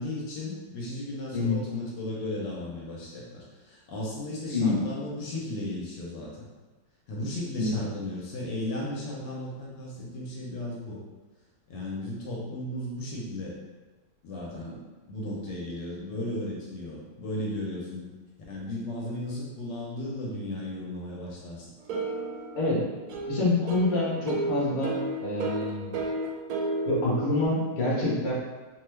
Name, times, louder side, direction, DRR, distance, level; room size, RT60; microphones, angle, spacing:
voice 1, 0.0-6.4 7.1-11.0 11.7-13.6 14.2-14.8 15.1-18.1 18.5-21.7, left 1 dB, 75° left, -4 dB, 1.3 m, -35 dB
voice 2, 4.5-4.8 7.5-7.7 22.5-22.8 23.2-25.9 26.9-28.3, left 2 dB, 45° left, -7 dB, 1.0 m, -26 dB
sound 1, 21.9-27.5, right 2 dB, 70° right, 0.9 m, -33 dB
3.0 x 2.3 x 3.2 m, 1.2 s
omnidirectional pair, 2.0 m